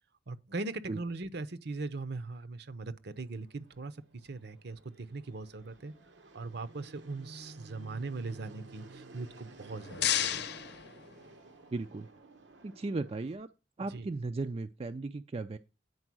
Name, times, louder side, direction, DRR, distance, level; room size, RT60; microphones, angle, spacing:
voice 1, 0.3-5.9 6.3-10.4 13.8-14.1, right 3 dB, 60° right, 0.8 m, -40 dB
Fixed-wing aircraft airplane, 3.1-13.3, right 2 dB, 80° right, 1.0 m, -54 dB
sound 1, 9.4-11.7, left 10 dB, 60° left, 0.7 m, -34 dB
voice 2, 11.7-12.1 12.6-13.5 13.8-15.6, right 3 dB, 30° right, 0.4 m, -36 dB
9.7 x 4.5 x 6.1 m
head